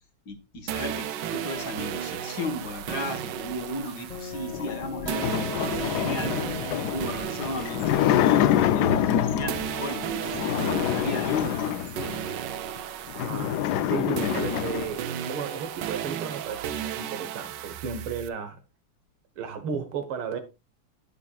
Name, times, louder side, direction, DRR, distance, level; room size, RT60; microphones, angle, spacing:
voice 1, 0.3-10.2 10.5-11.8, left 1 dB, 55° left, 1.7 m, -35 dB
sound 1, 0.7-9.2 9.5-18.3, right 10 dB, 70° right, 1.2 m, -35 dB
sound 2, 4.1-11.6, left 3 dB, 25° left, 1.0 m, -39 dB
sound 3, 4.5-9.7 10.2-12.3 12.8-12.9 13.1-14.9, left 11 dB, 75° left, 0.9 m, -26 dB
voice 2, 13.1-18.6 19.4-20.4, right 6 dB, 85° right, 2.1 m, -34 dB
10.0 x 9.8 x 2.3 m
omnidirectional pair, 2.3 m